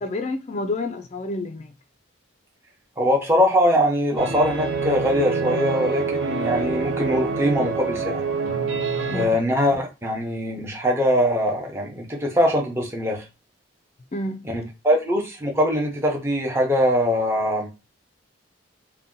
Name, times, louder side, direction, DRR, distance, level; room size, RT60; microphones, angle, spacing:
voice 1, 0.0-1.7 9.1-9.4 14.1-14.5, left 2 dB, 35° left, 0.4 m, -29 dB
voice 2, 3.0-8.2 9.1-13.3 14.4-17.7, equal, 10° right, 0.7 m, -22 dB
sound 1, 4.2-9.3, right 4 dB, 75° right, 0.7 m, -26 dB
2.7 x 2.2 x 3.7 m
head